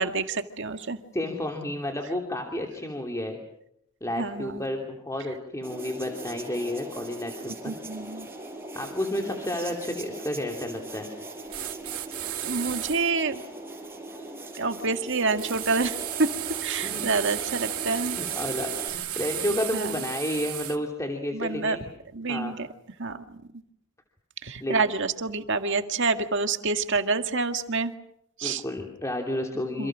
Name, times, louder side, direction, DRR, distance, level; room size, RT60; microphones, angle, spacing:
voice 1, 0.0-1.0 4.2-4.7 7.7-8.3 12.4-13.4 14.5-16.3 16.6-18.2 19.7-20.0 21.3-21.8 22.1-22.7 23.0-23.4 24.4-27.9 28.4-28.6 29.8-29.9, right 4 dB, 55° right, 7 dB, 2.0 m, -27 dB
voice 2, 1.1-3.4 4.0-7.7 8.7-11.1 16.8-17.0 18.1-21.8 22.3-22.5 24.6-24.8 28.4-29.9, left 1 dB, 15° left, 2 dB, 2.9 m, -31 dB
sound 1, 5.6-18.9, right 2 dB, 10° right, 5.2 m, -40 dB
sound 2, 11.5-13.0 15.4-20.8, right 13 dB, 85° right, 2.5 m, -33 dB
28.0 x 27.5 x 6.3 m, 0.76 s
head